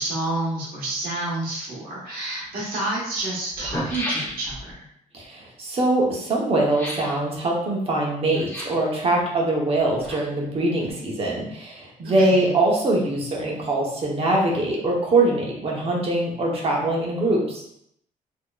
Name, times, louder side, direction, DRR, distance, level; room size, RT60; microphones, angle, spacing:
voice 1, 0.0-4.9 12.0-12.5, right 2 dB, 80° right, -5 dB, 1.2 m, -29 dB
sound 1, 3.5-4.7 6.7-7.2 8.3-8.9 9.7-10.5 10.8-10.9, equal, 10° left, 1.1 m, -33 dB
voice 2, 5.1-17.7, right 2 dB, 40° right, -2 dB, 0.9 m, -23 dB
4.7 x 2.9 x 2.3 m, 0.71 s
wide cardioid pair, 170°, 15 cm